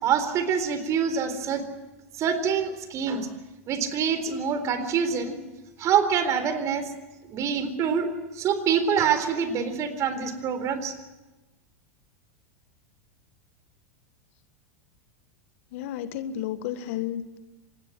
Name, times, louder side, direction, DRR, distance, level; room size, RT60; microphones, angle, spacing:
voice 1, 0.0-1.6 2.2-3.3 3.7-5.4 5.8-6.9 7.2-8.1 8.4-10.9, right 7 dB, 40° right, 10 dB, 4.0 m, -25 dB
voice 2, 15.7-17.4, left 11 dB, 60° left, 12 dB, 1.6 m, -32 dB
25.0 x 20.5 x 7.8 m, 1.1 s
hypercardioid pair, 95°, 8 cm